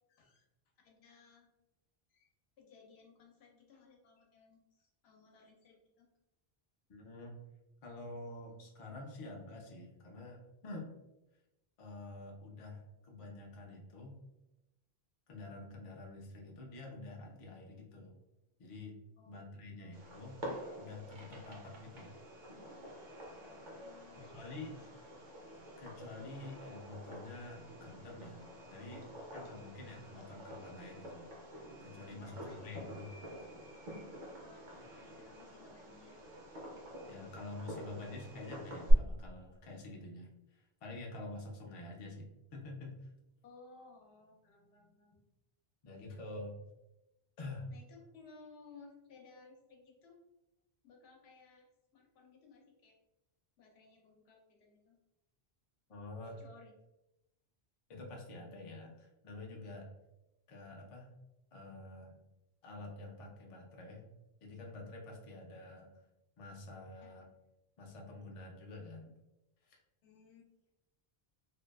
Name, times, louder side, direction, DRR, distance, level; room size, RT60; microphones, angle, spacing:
voice 1, 0.1-0.5 0.8-1.5 2.1-2.3 2.6-6.1 19.2-19.4 19.8-19.9 23.8-25.0 32.1-32.7 34.4-34.7 34.9-36.2 43.4-45.2 47.7-50.2 50.8-51.7 51.9-53.0 53.6-55.0 56.2-56.7 67.0-67.1 70.0-70.4, left 4 dB, 90° left, 1 dB, 0.9 m, -59 dB
voice 2, 6.9-7.4 7.8-10.9 11.8-14.2 15.3-18.1 18.6-19.0 19.3-20.4 20.8-22.1 24.2-24.8 25.8-28.4 28.7-31.3 31.8-32.4 32.6-33.1 37.0-42.3 42.5-43.1 45.8-46.6 47.4-47.7 55.9-56.4 57.9-59.9 60.5-61.1 61.5-62.2 62.6-64.1 64.4-65.9 66.4-67.3 67.8-69.1 69.6-69.8, left 2 dB, 50° left, 0 dB, 0.4 m, -48 dB
Fireworks, 19.9-38.9, equal, 55° right, 0.8 m, -45 dB
2.6 x 2.2 x 2.2 m, 0.93 s
omnidirectional pair, 1.0 m